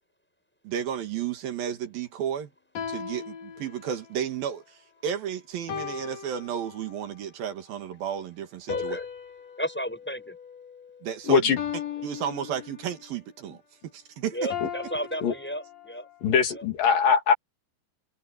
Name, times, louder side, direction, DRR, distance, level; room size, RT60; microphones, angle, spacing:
voice 1, 0.6-2.5 2.9-9.0 11.0-11.6 12.0-13.6 13.8-14.5, right 9 dB, 80° right, 3.7 m, -32 dB
sound 1, 2.8-4.1 5.7-7.1 8.7-11.0 11.6-13.1 14.5-16.1, left 8 dB, 55° left, 2.8 m, -37 dB
voice 2, 8.7-9.1 9.6-10.4 14.3-16.1, equal, 5° left, 6.8 m, -33 dB
voice 3, 11.2-11.6 14.6-14.7 15.2-15.3 16.2-17.3, left 6 dB, 70° left, 4.2 m, -21 dB
omnidirectional pair, 4.1 m